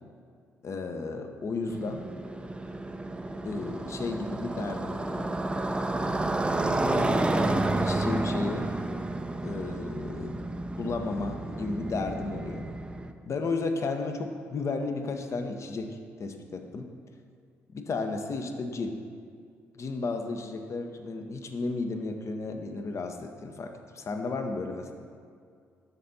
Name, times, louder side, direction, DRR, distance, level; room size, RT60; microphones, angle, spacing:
voice 1, 0.6-2.0 3.4-5.3 6.9-8.7 9.4-10.4 10.8-12.6 13.3-16.9 17.7-19.0 19.8-24.9, left 3 dB, 45° left, 5 dB, 0.8 m, -33 dB
Motorcycle, 1.7-13.1, right 2 dB, 15° right, 0.5 m, -30 dB
12.5 x 4.3 x 4.0 m, 2.2 s
figure-of-eight pair, 45°, 7 cm